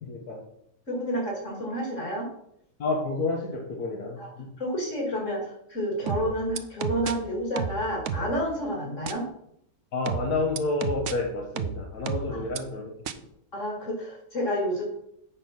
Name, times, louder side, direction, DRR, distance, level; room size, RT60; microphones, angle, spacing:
voice 1, 0.0-0.4 2.8-4.2 9.9-12.9, left 3 dB, 80° left, -1 dB, 1.8 m, -29 dB
voice 2, 0.9-2.3 4.2-4.3 4.6-5.4 5.7-9.3 12.3-12.4 13.5-14.9, equal, 50° left, -1 dB, 3.0 m, -29 dB
sound 1, 6.1-7.1 7.6-8.4 9.1-9.2 10.1-11.1 11.6-12.6 13.1-13.2, right 7 dB, 80° right, 1.1 m, -31 dB
8.0 x 5.5 x 6.0 m, 0.74 s
omnidirectional pair, 1.6 m